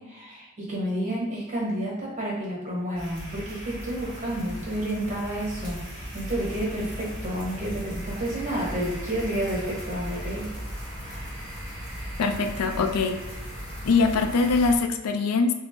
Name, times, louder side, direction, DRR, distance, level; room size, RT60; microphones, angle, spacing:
voice 1, 0.0-10.5 11.1-11.2, right 1 dB, 35° right, -5 dB, 1.1 m, -30 dB
sound 1, 2.9-14.8, equal, 5° left, 1.1 m, -37 dB
voice 2, 12.2-13.2 13.8-15.5, left 4 dB, 85° left, 7 dB, 0.4 m, -23 dB
3.6 x 2.0 x 3.6 m, 1.1 s
head